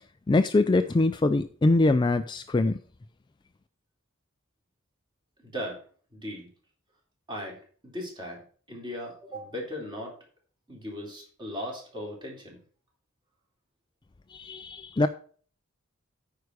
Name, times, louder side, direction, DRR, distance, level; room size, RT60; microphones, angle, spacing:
voice 1, 0.3-2.8 14.3-15.1, left 2 dB, 20° left, 10 dB, 0.4 m, -23 dB
voice 2, 5.4-5.8 6.1-6.5 7.3-7.6 7.8-8.4 8.7-10.1 10.7-12.6, equal, 20° right, -2 dB, 3.5 m, -37 dB
9.3 x 4.8 x 6.5 m, 0.43 s
head